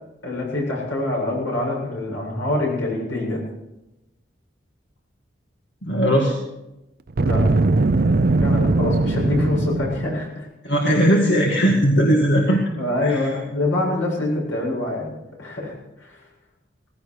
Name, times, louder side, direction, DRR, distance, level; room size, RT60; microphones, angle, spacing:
voice 1, 0.2-3.4 7.2-7.5 8.4-10.5 12.5-15.7 16.0-16.1, left 1 dB, 80° left, -2 dB, 7.7 m, -25 dB
voice 2, 5.8-6.4 10.6-12.6 13.0-13.3, equal, 60° left, -1 dB, 2.3 m, -18 dB
Boom, 7.1-10.2, right 2 dB, 50° right, 0.5 m, -20 dB
18.0 x 16.0 x 4.9 m, 0.94 s
head